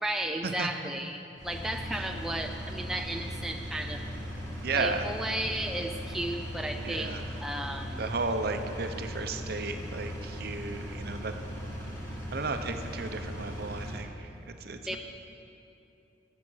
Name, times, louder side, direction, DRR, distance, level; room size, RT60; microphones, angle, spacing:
voice 1, 0.0-4.0 4.8-8.0 14.9-15.0, right 1 dB, ahead, 3 dB, 0.4 m, -34 dB
Engine, 1.4-14.0, equal, 15° left, 1.4 m, -38 dB
voice 2, 4.6-5.0 6.8-7.2 8.0-11.3 12.3-15.0, right 3 dB, 50° right, 7 dB, 0.7 m, -34 dB
12.0 x 8.5 x 6.2 m, 2.8 s
head